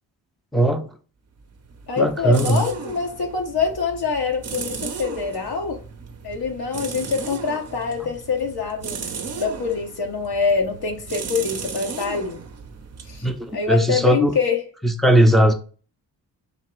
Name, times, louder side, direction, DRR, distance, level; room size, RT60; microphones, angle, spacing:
voice 1, 0.5-0.8 2.0-2.6 13.2-14.3 14.8-15.5, right 1 dB, ahead, 0.6 m, -18 dB
sound 1, 1.4-14.0, right 5 dB, 40° right, 0.6 m, -35 dB
voice 2, 1.9-5.8 6.2-9.0 9.3-12.4 13.1-13.3 13.5-14.6, left 5 dB, 65° left, 1.0 m, -25 dB
3.7 x 2.9 x 4.5 m
wide cardioid pair, 105°, 41 cm